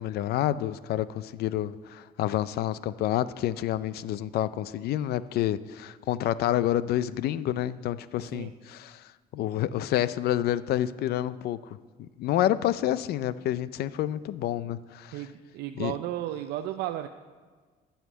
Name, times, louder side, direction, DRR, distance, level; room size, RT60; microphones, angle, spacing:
voice 1, 0.0-11.6 12.0-15.2 15.8-15.9, left 12 dB, 70° left, 16 dB, 0.5 m, -28 dB
voice 2, 15.1-17.1, right 13 dB, 80° right, 7 dB, 0.5 m, -34 dB
12.5 x 5.8 x 8.1 m, 1.5 s
cardioid pair, 110°, 17 cm